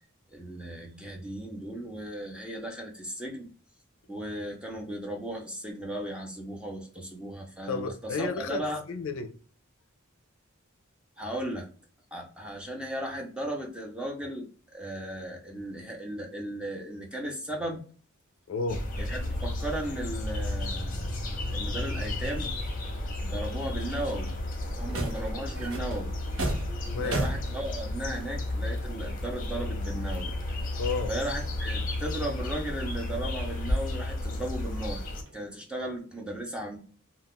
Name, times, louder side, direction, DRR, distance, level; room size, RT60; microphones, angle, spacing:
voice 1, 0.3-3.5 4.1-8.8 11.2-11.7 12.1-14.5 14.7-17.8 19.0-22.5 23.2-24.4 24.7-26.1 27.0-30.3 31.1-35.0 35.3-36.8, right 1 dB, 5° right, 0.6 m, -36 dB
voice 2, 7.7-9.4 18.5-18.9 26.9-27.2 30.8-31.1, left 4 dB, 70° left, 0.4 m, -32 dB
sound 1, 18.7-35.2, left 1 dB, 40° left, 0.7 m, -33 dB
sound 2, 24.7-28.2 29.2-29.3 29.8-31.2 31.6-33.3 33.7-33.9 35.0-35.5, right 2 dB, 70° right, 0.7 m, -36 dB
2.4 x 2.3 x 3.5 m
head